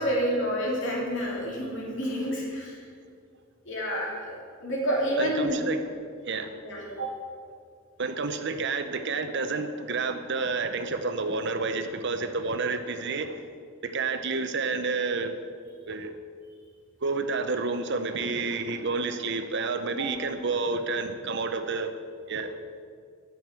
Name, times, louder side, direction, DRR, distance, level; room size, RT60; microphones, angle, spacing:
voice 1, 0.0-2.8 3.6-5.6 6.6-7.1 20.0-20.2, equal, 60° left, -4 dB, 3.3 m, -29 dB
voice 2, 5.2-5.8 6.2-6.6 8.0-13.4 13.8-15.4 15.9-16.1 17.0-21.9 22.3-22.5, right 4 dB, 55° right, 8 dB, 0.8 m, -29 dB
12.5 x 6.2 x 7.6 m, 2.2 s
head